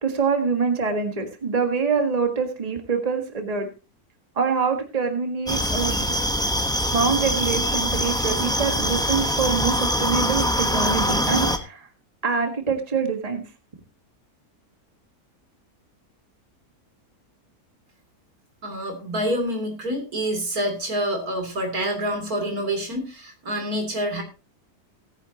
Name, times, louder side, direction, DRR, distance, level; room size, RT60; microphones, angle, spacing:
voice 1, 0.0-3.7 4.4-6.2 6.9-11.9 12.2-13.4, right 5 dB, 25° right, 5 dB, 1.7 m, -25 dB
sound 1, 5.5-11.6, equal, 5° left, 1.0 m, -23 dB
voice 2, 18.6-24.2, equal, 70° right, 4 dB, 3.7 m, -27 dB
18.0 x 10.0 x 2.9 m, 0.29 s
omnidirectional pair, 1.6 m